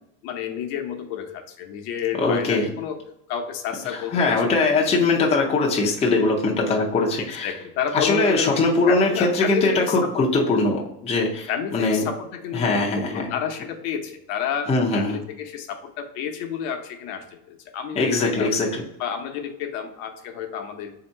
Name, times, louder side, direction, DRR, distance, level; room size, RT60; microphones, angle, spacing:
voice 1, 0.2-3.0 3.3-4.8 7.2-10.2 11.5-14.7 14.9-18.5 19.0-20.9, left 8 dB, 60° left, 4 dB, 0.8 m, -30 dB
voice 2, 2.2-2.6 3.9-7.5 7.9-12.0 12.5-13.3 14.7-15.2 17.9-18.8, left 3 dB, 15° left, -2 dB, 0.5 m, -21 dB
3.6 x 2.8 x 4.4 m, 0.80 s
supercardioid pair, 125°, 47 cm